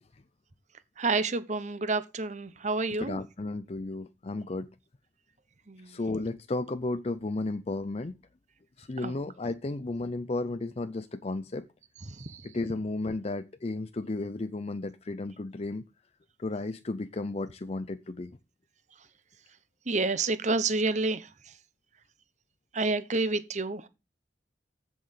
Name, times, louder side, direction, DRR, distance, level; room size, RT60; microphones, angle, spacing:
voice 1, 1.0-3.2 5.7-6.0 9.0-9.1 12.1-12.4 19.9-21.3 22.7-23.9, right 3 dB, 40° right, 1.0 m, -29 dB
voice 2, 3.0-4.7 5.8-8.2 8.8-11.7 12.4-15.8 16.4-18.4, left 2 dB, 35° left, 0.5 m, -33 dB
7.8 x 7.4 x 6.6 m
head